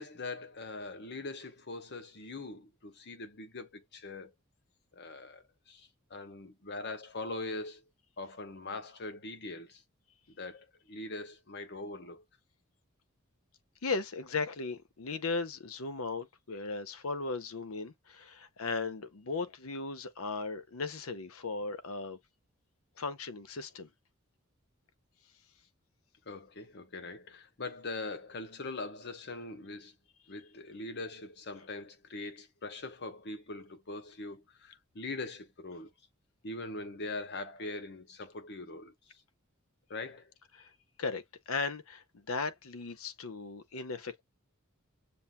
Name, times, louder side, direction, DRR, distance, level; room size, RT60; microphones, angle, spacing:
voice 1, 0.0-4.3 4.9-7.8 8.2-9.8 10.3-12.2 26.3-29.9 30.3-35.9 36.4-38.9 39.9-40.3, left 2 dB, 55° left, 1.0 m, -42 dB
voice 2, 13.8-22.2 23.0-23.9 40.6-40.7 41.0-41.2 41.5-44.2, left 4 dB, 80° left, 0.8 m, -37 dB
7.0 x 2.5 x 2.3 m
head